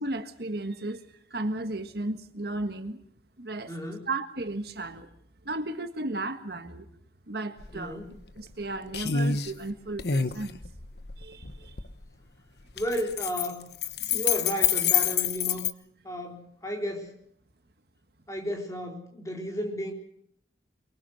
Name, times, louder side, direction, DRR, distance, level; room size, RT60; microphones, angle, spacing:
voice 1, 0.0-1.0 1.3-3.0 3.4-3.7 4.1-5.1 5.4-6.9 7.3-8.0 8.4-10.6 11.2-11.8 14.0-14.1, right 2 dB, 60° right, 8 dB, 1.7 m, -34 dB
voice 2, 3.7-4.1 7.7-8.1 12.7-13.7 14.1-15.6 16.0-17.1 18.3-19.9, equal, 15° left, 2 dB, 4.0 m, -33 dB
sound 1, 7.6-7.7 8.1-8.6 8.9-9.5 10.0-11.9 12.7-15.7, left 8 dB, 60° left, 1.1 m, -27 dB
23.5 x 23.5 x 6.4 m, 0.71 s
head